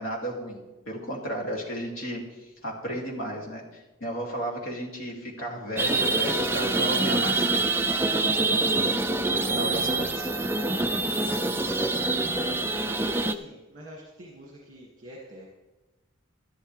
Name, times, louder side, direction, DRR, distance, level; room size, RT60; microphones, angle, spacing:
voice 1, 0.0-7.7 9.3-10.3, equal, 75° left, -1 dB, 2.6 m, -34 dB
sound 1, 5.8-13.3, right 2 dB, 10° right, 0.4 m, -25 dB
voice 2, 12.3-15.5, equal, 40° right, -4 dB, 2.0 m, -46 dB
13.0 x 11.5 x 3.3 m, 1.1 s
head